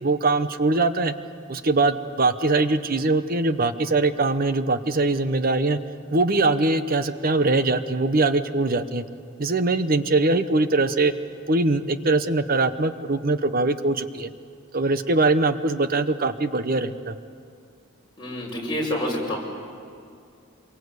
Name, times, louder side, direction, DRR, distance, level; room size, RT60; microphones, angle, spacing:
voice 1, 0.0-1.1 1.5-5.8 6.1-9.0 9.4-11.1 11.5-14.3 14.7-17.2, right 3 dB, 45° right, 11 dB, 0.9 m, -22 dB
voice 2, 18.2-19.4, left 1 dB, 20° left, -3 dB, 6.4 m, -27 dB
26.0 x 23.5 x 8.2 m, 2.4 s
head